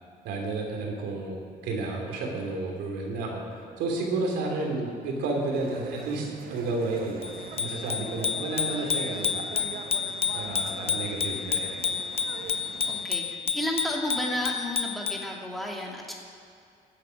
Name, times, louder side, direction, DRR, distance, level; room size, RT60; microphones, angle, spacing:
voice 1, 0.2-7.3 7.5-9.6 10.3-11.8, right 3 dB, 85° right, 0 dB, 3.2 m, -31 dB
sound 1, 5.5-13.1, right 6 dB, 60° right, 1.2 m, -43 dB
Bicycle bell, 7.2-15.3, left 6 dB, 35° left, 0.8 m, -30 dB
voice 2, 7.9-8.3 10.7-11.1 12.9-16.1, equal, ahead, -1 dB, 2.5 m, -33 dB
15.5 x 8.4 x 6.0 m, 2.4 s
cardioid pair, 110°, 17 cm